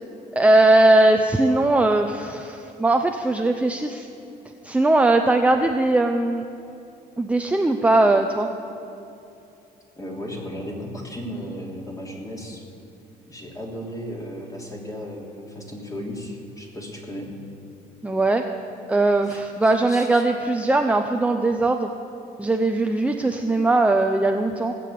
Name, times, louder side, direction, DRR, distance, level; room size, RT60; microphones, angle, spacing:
voice 1, 0.3-4.1 4.6-6.5 7.2-8.5 18.0-18.5 18.9-21.9 22.4-24.7, right 2 dB, 10° right, 4 dB, 0.7 m, -19 dB
voice 2, 9.9-12.6 13.3-17.3 19.3-20.2, equal, 20° left, -1 dB, 3.1 m, -35 dB
18.0 x 7.8 x 8.6 m, 2.8 s
cardioid pair, 110°, 17 cm